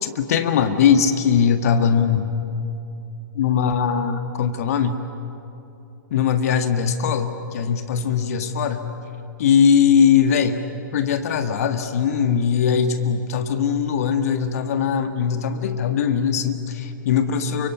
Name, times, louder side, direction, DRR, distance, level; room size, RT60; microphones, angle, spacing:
voice 1, 0.0-2.3 3.3-4.9 6.1-8.9 9.4-10.6 10.9-17.7, left 7 dB, 45° left, 8 dB, 1.7 m, -20 dB
29.0 x 24.5 x 8.4 m, 2.8 s
figure-of-eight pair, 110°, 11 cm